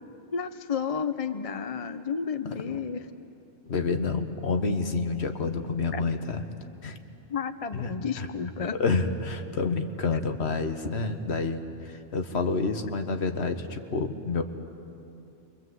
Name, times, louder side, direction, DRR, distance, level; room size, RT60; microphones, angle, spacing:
voice 1, 0.3-3.1 5.9-6.0 7.3-8.8, left 6 dB, 35° left, 9 dB, 0.7 m, -31 dB
voice 2, 2.4-2.8 3.7-6.4 6.8-7.0 7.7-8.3 8.6-14.4, left 4 dB, 70° left, 6 dB, 1.6 m, -29 dB
29.0 x 24.0 x 8.0 m, 2.8 s
omnidirectional pair, 1.2 m